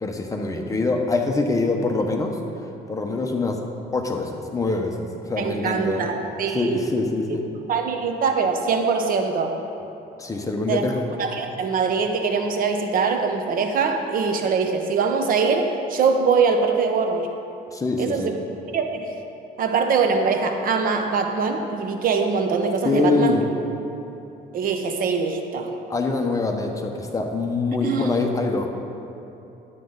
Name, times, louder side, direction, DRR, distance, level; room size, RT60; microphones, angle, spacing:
voice 1, 0.0-2.4 2.9-3.6 3.9-6.1 6.5-7.4 10.2-11.0 17.7-18.3 22.8-23.4 25.9-28.7, left 3 dB, 20° left, 2 dB, 1.1 m, -24 dB
voice 2, 5.4-6.9 7.7-9.5 10.7-10.9 11.2-17.3 18.0-18.3 18.7-19.1 19.6-23.4 24.5-25.7 27.8-28.1, right 5 dB, 55° right, 5 dB, 0.9 m, -23 dB
12.0 x 9.0 x 4.0 m, 3.0 s
cardioid pair, 110°, 17 cm